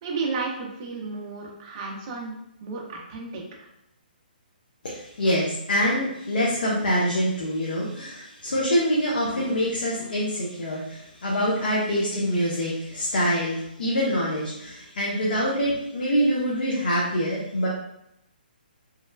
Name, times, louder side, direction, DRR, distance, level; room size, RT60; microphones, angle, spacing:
voice 1, 0.0-3.4, right 4 dB, 25° right, -1 dB, 0.4 m, -33 dB
voice 2, 4.8-17.7, equal, 65° left, -5 dB, 0.7 m, -25 dB
2.9 x 2.1 x 2.2 m, 0.80 s
hypercardioid pair, 170°, 5 cm